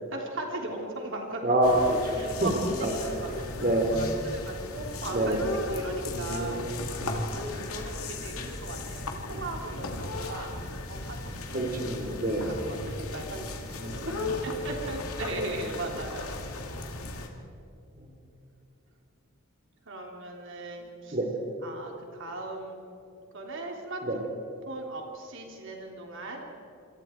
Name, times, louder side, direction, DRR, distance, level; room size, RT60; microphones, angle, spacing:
voice 1, 0.1-1.5 2.1-3.3 3.9-6.6 7.3-12.6 12.8-14.1 14.4-16.9 19.8-21.2 21.6-22.9 23.3-24.3 24.6-26.5, right 2 dB, 60° right, 0 dB, 3.4 m, -38 dB
voice 2, 1.4-2.5 2.8-2.9 3.2-3.9 5.1-5.4 6.1-7.1 9.2-9.4 11.5-12.5 13.8-14.1 18.0-18.1 21.1-21.3 24.0-24.2, right 1 dB, 40° right, 2 dB, 3.2 m, -28 dB
sound 1, 1.6-17.3, left 2 dB, 90° left, 2.4 m, -36 dB
27.0 x 27.0 x 4.6 m, 2.7 s
head